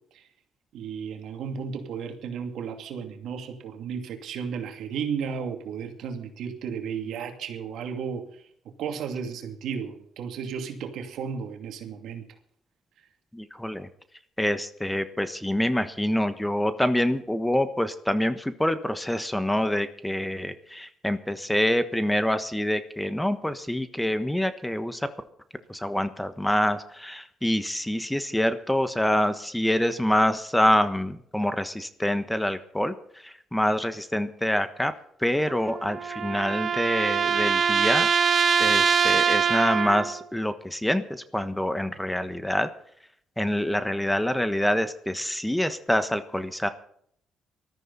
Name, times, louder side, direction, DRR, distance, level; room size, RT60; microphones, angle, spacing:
voice 1, 0.7-8.5 8.8-12.2, right 6 dB, 80° right, 5 dB, 2.6 m, -34 dB
voice 2, 13.3-13.9 14.4-25.1 25.7-34.9 35.2-38.1 38.6-42.7 43.4-46.7, left 1 dB, 5° left, 11 dB, 1.3 m, -26 dB
sound 1, 35.5-40.2, right 6 dB, 50° right, 1.3 m, -23 dB
19.5 x 13.5 x 4.2 m, 0.67 s
cardioid pair, 90°, 0 cm